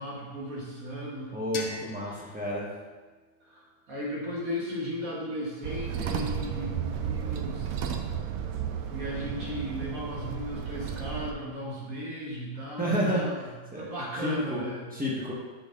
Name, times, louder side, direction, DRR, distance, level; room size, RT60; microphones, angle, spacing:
voice 1, 0.0-1.3 2.0-2.3 3.4-7.7 8.9-14.9, equal, 50° right, -4 dB, 1.7 m, -36 dB
voice 2, 1.3-2.7 12.8-13.2 13.7-13.9 14.2-14.6 14.9-15.3, equal, 5° right, -6 dB, 0.9 m, -30 dB
sound 1, 1.5-4.4, left 4 dB, 70° left, 1.3 m, -44 dB
sound 2, 5.6-11.3, right 8 dB, 85° right, 0.7 m, -33 dB
6.6 x 4.6 x 3.7 m, 1.3 s
omnidirectional pair, 2.1 m